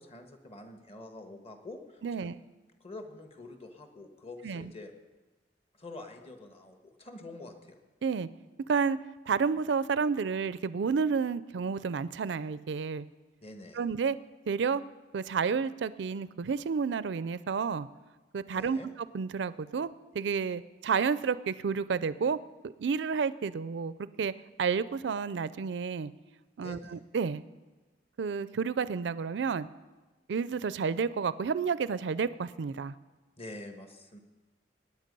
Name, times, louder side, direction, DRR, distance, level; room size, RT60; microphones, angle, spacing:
voice 1, 0.0-2.3 2.8-4.9 5.8-7.8 13.4-13.8 18.5-18.9 26.6-27.0 33.4-34.2, left 2 dB, 35° left, 5 dB, 1.4 m, -46 dB
voice 2, 2.0-2.3 4.4-4.7 8.0-8.3 8.7-9.0 9.3-13.1 13.7-14.2 14.5-14.8 15.1-17.9 18.3-19.9 20.1-22.4 22.8-23.9 24.2-24.3 24.6-26.1 26.6-27.4 28.2-29.7 30.3-32.9, right 5 dB, 75° right, 16 dB, 0.4 m, -30 dB
18.0 x 9.4 x 5.4 m, 1.2 s
head